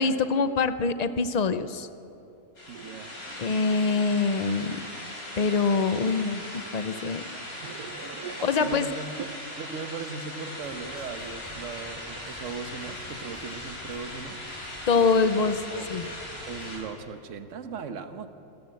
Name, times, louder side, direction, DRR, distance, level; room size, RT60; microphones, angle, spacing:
voice 1, 0.0-1.9 3.4-4.8 5.4-7.2 8.4-8.9 14.9-15.6 15.9-16.1, left 4 dB, 40° left, 12 dB, 0.6 m, -24 dB
sound 1, 2.6-16.8, left 1 dB, 70° left, 5.1 m, -39 dB
voice 2, 2.7-3.1 7.3-8.0 8.3-9.2 9.6-14.4 15.0-15.3 15.7-15.9 16.5-18.3, right 5 dB, 60° right, 9 dB, 1.4 m, -38 dB
sound 2, 2.7-5.2 5.8-6.0 6.7-6.8 7.3-8.7 9.0-9.4, right 7 dB, 85° right, 1.4 m, -44 dB
sound 3, 10.6-16.7, equal, 5° right, 5.9 m, -49 dB
27.0 x 14.0 x 7.9 m, 2.8 s
omnidirectional pair, 1.6 m